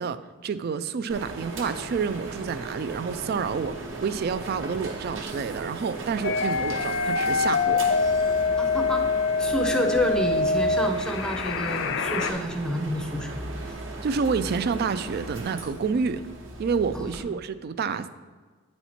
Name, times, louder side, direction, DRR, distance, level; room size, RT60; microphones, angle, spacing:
voice 1, 0.0-7.9 14.0-16.3 16.6-18.1, right 5 dB, 50° right, 13 dB, 0.3 m, -29 dB
sound 1, 1.1-17.2, right 2 dB, 70° right, 1.1 m, -37 dB
sound 2, 6.2-12.3, left 4 dB, 60° left, 0.5 m, -25 dB
voice 2, 8.6-9.0 9.4-13.4 16.9-17.1, left 1 dB, 5° left, 3 dB, 0.6 m, -29 dB
9.0 x 4.3 x 4.4 m, 1.4 s
head